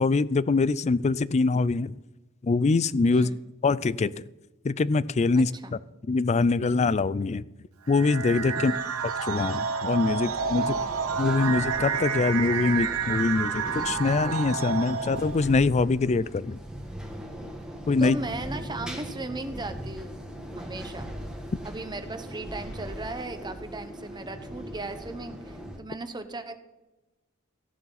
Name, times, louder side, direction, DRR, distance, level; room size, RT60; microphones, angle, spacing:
voice 1, 0.0-1.9 2.4-3.3 3.6-4.2 4.6-5.5 6.1-7.4 7.9-8.7 9.3-10.7 11.2-16.6 17.9-18.2, left 3 dB, 30° left, 19 dB, 0.4 m, -24 dB
voice 2, 5.3-5.7 8.5-8.8 10.6-10.9 18.0-20.2 20.6-21.1 21.6-26.6, right 2 dB, 20° right, 8 dB, 1.1 m, -37 dB
sound 1, 7.9-15.5, right 6 dB, 80° right, 0.9 m, -30 dB
sound 2, 10.0-25.8, equal, 5° right, 1.5 m, -40 dB
15.0 x 11.0 x 4.1 m, 1.0 s
head